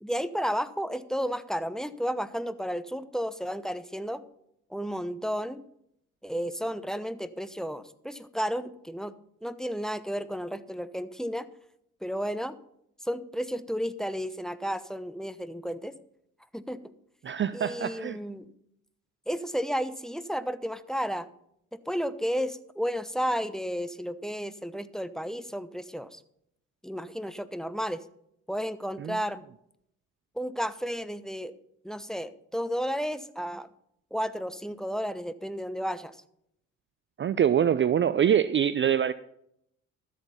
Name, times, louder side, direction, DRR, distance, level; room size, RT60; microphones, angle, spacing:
voice 1, 0.0-4.2 4.7-5.6 6.2-9.1 9.4-11.5 12.0-12.5 13.0-15.9 16.5-16.8 17.5-18.4 19.3-21.3 21.7-26.2 26.8-28.0 28.5-29.4 30.4-31.5 31.8-33.7 34.1-36.2, equal, ahead, 0.9 m, -32 dB
voice 2, 17.2-18.2 29.0-29.2 37.2-39.1, right 9 dB, 30° right, 0.5 m, -24 dB
13.0 x 8.2 x 5.6 m
hypercardioid pair, 50°, 37 cm